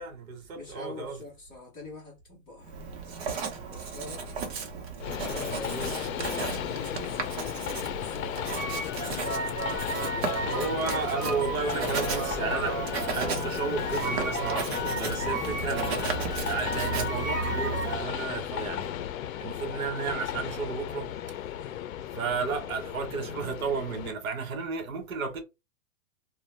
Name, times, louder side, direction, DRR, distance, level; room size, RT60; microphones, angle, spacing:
voice 1, 0.0-1.2 5.5-6.0 10.4-12.8 13.1-16.1 16.5-18.9 19.4-21.4 22.1-25.4, right 5 dB, 85° right, 1.1 m, -33 dB
voice 2, 0.5-2.8 3.7-4.3 5.3-11.8 15.3-15.7 21.7-21.8 22.8-23.0, left 2 dB, 10° left, 0.7 m, -44 dB
Writing, 2.6-18.0, right 5 dB, 50° right, 0.8 m, -35 dB
Train, 5.0-24.1, left 10 dB, 80° left, 0.5 m, -35 dB
sound 1, 8.5-18.0, right 2 dB, 15° right, 0.4 m, -34 dB
2.6 x 2.2 x 3.2 m
supercardioid pair, 170°, 40 cm